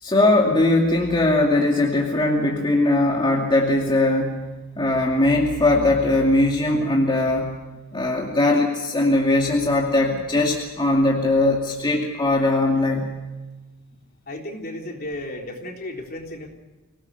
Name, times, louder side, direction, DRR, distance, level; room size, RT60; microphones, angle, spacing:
voice 1, 0.0-7.6 7.9-13.1, left 2 dB, 20° left, -1 dB, 2.5 m, -20 dB
voice 2, 14.3-16.5, left 1 dB, 45° left, 1 dB, 3.6 m, -34 dB
25.5 x 18.0 x 6.7 m, 1.2 s
head